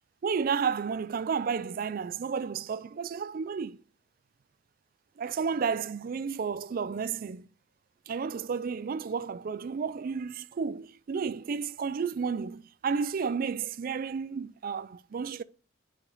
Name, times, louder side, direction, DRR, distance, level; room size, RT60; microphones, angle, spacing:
voice 1, 0.2-3.8 5.2-7.5 8.1-15.4, right 6 dB, 45° right, 0.3 m, -32 dB
6.8 x 5.0 x 3.9 m
head